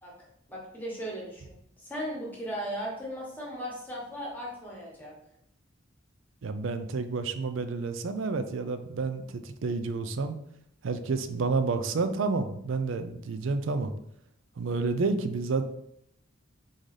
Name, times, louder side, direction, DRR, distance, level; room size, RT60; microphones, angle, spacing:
voice 1, 0.5-1.5 1.8-5.1, equal, 10° left, -4 dB, 1.2 m, -37 dB
voice 2, 6.4-10.4 10.8-13.9 14.6-15.6, right 4 dB, 65° right, 10 dB, 0.4 m, -30 dB
3.8 x 3.8 x 3.2 m, 0.73 s
head